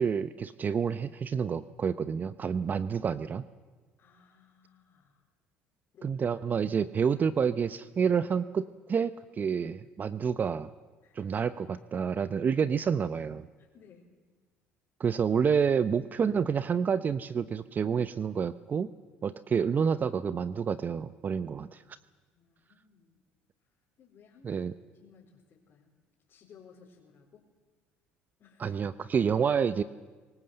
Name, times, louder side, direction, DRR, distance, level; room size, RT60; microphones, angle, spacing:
voice 1, 0.0-3.4 6.0-10.7 11.1-13.5 15.0-18.9 19.2-21.8 24.4-24.7 28.6-29.8, right 6 dB, 35° right, 14 dB, 0.7 m, -28 dB
voice 2, 4.0-5.2 5.9-6.2 11.0-11.3 13.6-14.1 19.3-19.4 22.3-23.2 24.0-24.6 24.9-25.9 26.3-27.5 28.4-28.8, left 6 dB, 50° left, -3 dB, 4.5 m, -58 dB
24.5 x 20.5 x 7.9 m, 1.3 s
supercardioid pair, 80°, 5 cm